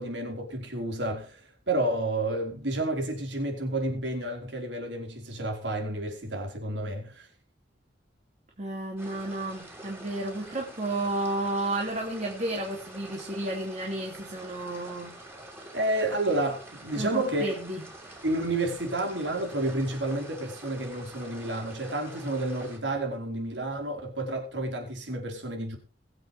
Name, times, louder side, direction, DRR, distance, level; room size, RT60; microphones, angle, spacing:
voice 1, 0.0-7.3 15.7-17.4 18.2-25.8, right 1 dB, 80° right, 4.6 m, -30 dB
voice 2, 8.6-15.1 17.0-17.8, right 1 dB, 40° right, 2.8 m, -32 dB
sound 1, 9.0-22.8, right 1 dB, 15° right, 4.1 m, -46 dB
22.0 x 7.9 x 3.4 m
head